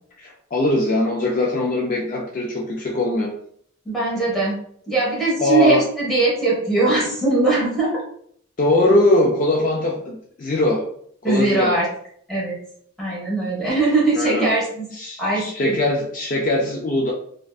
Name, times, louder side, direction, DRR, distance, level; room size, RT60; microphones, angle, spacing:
voice 1, 0.2-3.3 5.4-5.8 8.6-10.8 11.3-11.7 14.1-14.5 14.9-17.1, left 2 dB, 40° left, -2 dB, 0.3 m, -21 dB
voice 2, 3.8-4.6 4.9-8.0 11.2-11.9 12.3-12.6 13.0-14.9 15.2-15.7, right 3 dB, ahead, -6 dB, 0.9 m, -20 dB
2.5 x 2.2 x 2.3 m, 0.64 s
head